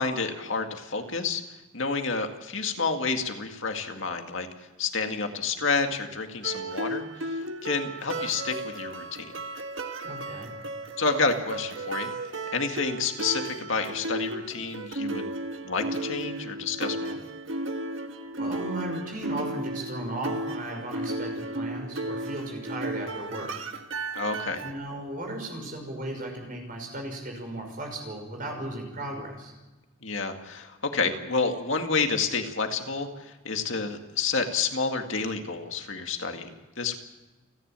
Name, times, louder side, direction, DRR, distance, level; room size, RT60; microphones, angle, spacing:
voice 1, 0.0-1.4 1.7-4.5 4.8-9.3 11.0-12.1 12.5-15.3 15.6-17.2 24.1-24.6 30.0-37.0, left 4 dB, 75° left, 5 dB, 2.1 m, -29 dB
sound 1, 6.4-24.7, right 2 dB, 70° right, 1.6 m, -34 dB
voice 2, 10.0-10.5 18.4-23.5 24.6-29.5, right 1 dB, 45° right, 2 dB, 5.8 m, -36 dB
29.5 x 11.0 x 8.9 m, 1.1 s
head